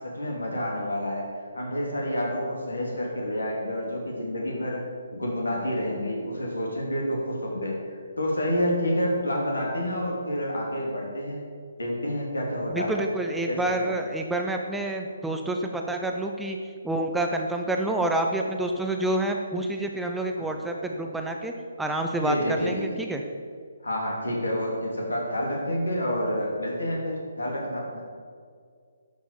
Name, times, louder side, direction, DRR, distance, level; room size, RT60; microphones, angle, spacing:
voice 1, 0.0-1.3 1.5-4.8 5.1-11.4 11.8-13.0 13.5-14.0 20.4-20.5 22.2-22.9 23.8-28.0, equal, 75° left, -1 dB, 3.5 m, -29 dB
voice 2, 12.7-16.6 16.8-23.2, right 1 dB, 5° right, 2 dB, 0.7 m, -28 dB
11.5 x 6.4 x 7.1 m, 2.1 s
figure-of-eight pair, 140°, 0 cm